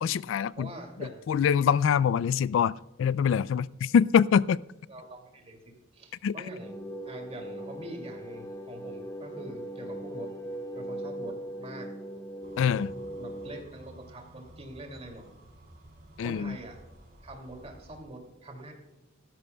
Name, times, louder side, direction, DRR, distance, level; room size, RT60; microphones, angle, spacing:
voice 1, 0.0-0.7 1.3-2.7 3.0-4.6 6.2-6.3 12.6-12.9 16.2-16.6, left 7 dB, 85° left, 21 dB, 0.3 m, -24 dB
voice 2, 0.6-1.3 4.9-6.7 7.0-10.3 10.7-11.9 13.2-15.2 16.2-16.8 17.2-18.7, right 1 dB, 35° right, 2 dB, 2.5 m, -44 dB
sound 1, 6.6-13.6, right 1 dB, 15° left, 1.0 m, -39 dB
sound 2, 12.4-18.0, right 1 dB, 55° right, 2.7 m, -53 dB
16.0 x 13.0 x 2.3 m, 1.0 s
head